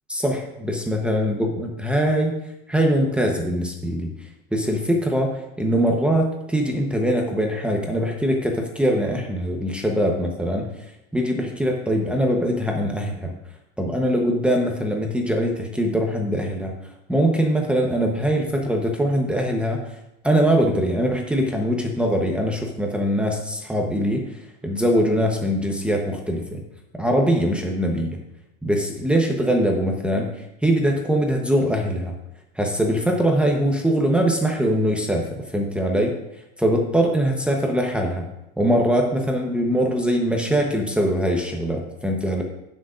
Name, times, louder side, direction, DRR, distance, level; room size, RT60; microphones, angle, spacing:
voice 1, 0.1-2.4 2.7-4.1 4.5-10.7 11.1-13.3 13.8-16.7 17.1-19.8 20.2-24.3 24.6-26.6 27.0-28.2 28.6-30.3 30.6-32.1 32.6-35.2 35.5-36.2 36.6-38.3 38.6-42.4, equal, 5° right, 1 dB, 0.9 m, -22 dB
16.5 x 6.4 x 2.5 m, 0.89 s
supercardioid pair, 145°, 32 cm